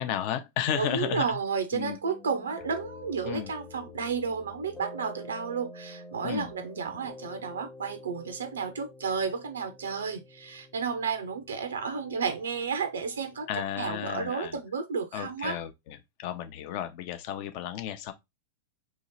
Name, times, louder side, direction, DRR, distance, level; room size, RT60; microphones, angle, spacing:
voice 1, 0.0-1.4 1.7-2.0 3.2-3.5 6.2-6.5 13.5-14.6 15.1-18.1, left 10 dB, 45° left, 0.6 m, -33 dB
voice 2, 0.7-15.6, right 5 dB, 70° right, 0.5 m, -32 dB
sound 1, 2.0-14.4, left 2 dB, 10° left, 0.9 m, -48 dB
3.1 x 2.8 x 4.0 m
figure-of-eight pair, 90°, 0 cm